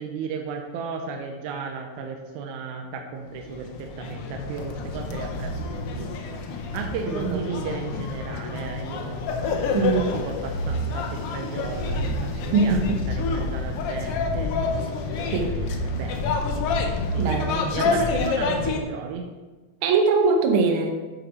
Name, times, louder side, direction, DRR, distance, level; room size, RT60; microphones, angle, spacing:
voice 1, 0.0-9.2 9.8-12.8 13.1-14.5 15.1-16.7 17.1-17.3 17.7-19.3, right 5 dB, 85° right, 3 dB, 2.2 m, -34 dB
sound 1, 3.3-18.8, left 3 dB, 75° left, 1.3 m, -28 dB
voice 2, 7.1-7.4 9.7-10.1 12.5-13.0 15.3-15.5 17.2-18.0 19.8-20.9, right 4 dB, 70° right, 4 dB, 1.3 m, -22 dB
8.6 x 5.4 x 4.3 m, 1.3 s
omnidirectional pair, 3.5 m